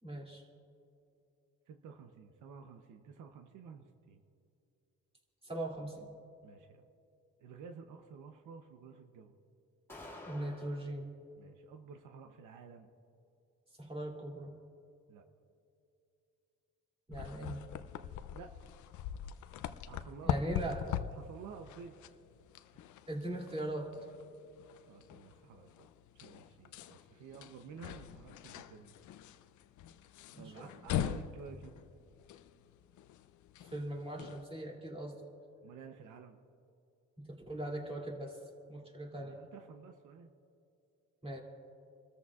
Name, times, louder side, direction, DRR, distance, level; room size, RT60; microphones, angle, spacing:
voice 1, 0.0-0.4 5.4-6.1 10.2-11.1 13.8-14.5 17.1-17.6 20.2-20.8 23.1-23.9 30.3-31.0 33.6-35.2 37.2-38.4 38.7-39.4 41.2-41.4, right 1 dB, 20° right, -1 dB, 2.8 m, -40 dB
voice 2, 1.7-4.2 6.4-6.9 7.4-9.4 11.4-12.9 15.1-15.2 18.3-18.7 19.9-20.7 21.1-22.0 24.8-25.9 26.1-28.9 30.4-31.8 35.6-36.4 39.1-40.3, right 6 dB, 80° right, 6 dB, 0.9 m, -51 dB
sound 1, 9.9-10.9, left 1 dB, 10° left, 2.9 m, -49 dB
sound 2, 17.1-34.4, left 10 dB, 75° left, 0.6 m, -42 dB
29.0 x 14.0 x 2.4 m, 2.6 s
cardioid pair, 90°, 30 cm